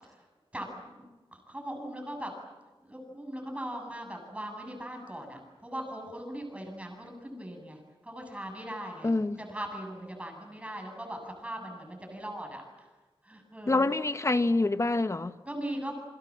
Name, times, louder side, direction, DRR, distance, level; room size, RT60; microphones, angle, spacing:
voice 1, 0.5-2.3 2.8-12.9 13.2-13.8 15.4-16.0, right 1 dB, 15° right, 7.8 m, -40 dB
voice 2, 9.0-9.4 13.7-15.4, left 2 dB, 30° left, 1.1 m, -26 dB
28.0 x 25.5 x 7.6 m
wide cardioid pair, 120°, 10 cm